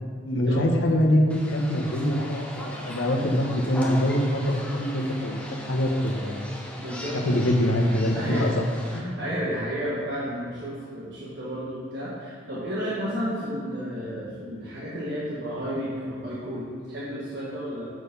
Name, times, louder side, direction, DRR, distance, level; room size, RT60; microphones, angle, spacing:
voice 1, 0.3-5.4 5.7-6.4 7.1-8.5 8.9-9.2, equal, 85° left, 1 dB, 1.1 m, -24 dB
sound 1, 1.3-9.0, left 1 dB, 5° left, 0.9 m, -39 dB
voice 2, 6.8-7.5 7.9-8.5 8.8-17.9, equal, 60° right, -8 dB, 1.5 m, -32 dB
6.8 x 6.2 x 5.3 m, 2.2 s
head